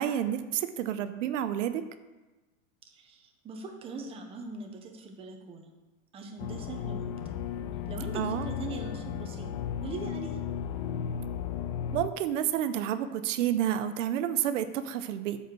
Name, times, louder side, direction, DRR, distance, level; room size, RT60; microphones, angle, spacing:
voice 1, 0.0-1.8 8.1-8.5 11.9-15.4, right 10 dB, 65° right, 11 dB, 0.7 m, -30 dB
voice 2, 2.9-5.7 6.1-7.3 7.9-9.5 9.8-10.4, right 3 dB, 15° right, 3 dB, 0.8 m, -41 dB
sound 1, 6.4-12.1, left 8 dB, 45° left, 0.5 m, -35 dB
8.8 x 4.9 x 6.8 m, 1.1 s
supercardioid pair, 155°, 39 cm